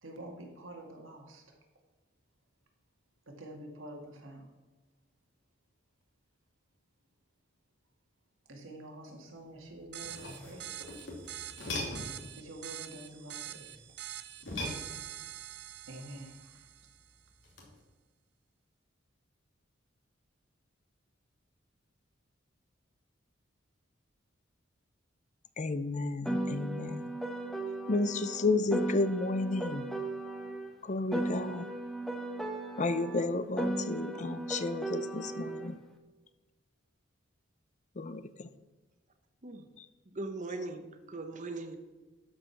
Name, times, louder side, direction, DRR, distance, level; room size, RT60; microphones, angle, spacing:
voice 1, 0.0-1.6 3.3-4.5 8.5-10.7 12.3-13.8 15.9-16.7, right 1 dB, 90° right, 1 dB, 2.1 m, -47 dB
sound 1, 9.8-12.3 14.4-15.4 17.4-17.8, left 1 dB, 70° left, 2.8 m, -40 dB
sound 2, 9.9-17.1, right 12 dB, 60° right, 0.6 m, -45 dB
voice 2, 25.6-27.1 27.9-29.8 30.8-31.7 32.8-35.8 38.0-38.5 39.8-39.9, left 3 dB, 40° left, 13 dB, 0.6 m, -32 dB
Piano, 26.2-30.7 31.1-35.7, right 1 dB, ahead, 1.0 m, -36 dB
voice 3, 40.1-41.8, right 2 dB, 40° right, 6 dB, 0.9 m, -39 dB
12.5 x 5.1 x 5.9 m, 1.2 s
head